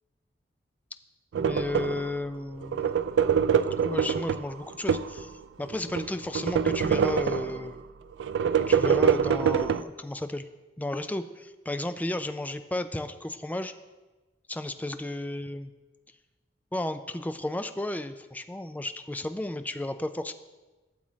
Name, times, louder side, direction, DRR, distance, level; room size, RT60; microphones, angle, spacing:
sound 1, 1.3-2.1 2.6-5.2 5.7-7.7 8.2-9.8, right 7 dB, 90° right, 0.3 m, -25 dB
voice 1, 1.4-3.0 3.8-5.3 5.6-7.8 8.6-10.5 10.8-13.7 14.5-15.7 16.7-20.3, left 1 dB, 10° left, 9 dB, 0.4 m, -33 dB
12.0 x 7.4 x 3.1 m, 1.2 s
head